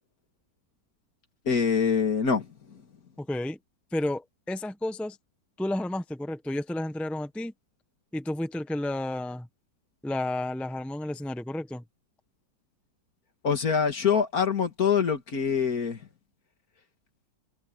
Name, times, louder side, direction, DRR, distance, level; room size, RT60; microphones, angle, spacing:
voice 1, 1.5-2.5 13.4-16.0, left 6 dB, 55° left, 2.4 m, -24 dB
voice 2, 3.2-3.6 3.9-5.2 5.6-7.5 8.1-9.5 10.0-11.8, left 1 dB, ahead, 0.9 m, -31 dB
omnidirectional pair, 1.9 m